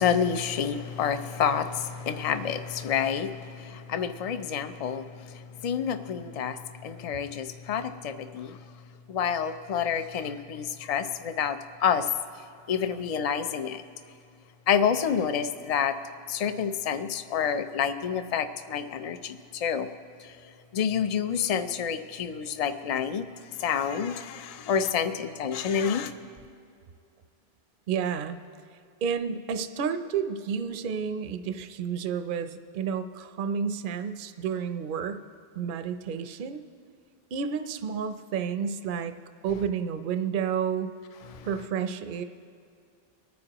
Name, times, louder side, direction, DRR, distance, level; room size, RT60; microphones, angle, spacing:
voice 1, 0.0-8.6 9.1-12.1 12.7-13.8 14.7-15.9 16.3-19.9 20.2-20.3 20.7-23.2 23.6-26.1 41.3-41.5, left 7 dB, 45° left, 10 dB, 0.5 m, -28 dB
voice 2, 27.9-28.4 29.0-35.2 35.5-36.6 37.3-39.1 39.4-40.9 41.4-42.2, right 7 dB, 60° right, 8 dB, 0.7 m, -30 dB
25.5 x 9.4 x 3.0 m, 2.4 s
omnidirectional pair, 1.1 m